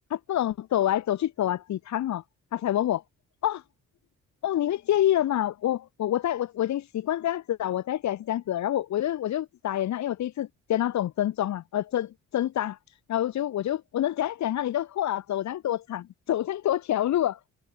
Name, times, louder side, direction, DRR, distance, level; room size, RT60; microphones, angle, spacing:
voice 1, 0.1-2.2 2.5-3.0 3.4-3.6 4.4-12.8 13.1-17.4, left 12 dB, 65° left, 1.4 m, -27 dB
cardioid pair, 90°, 30 cm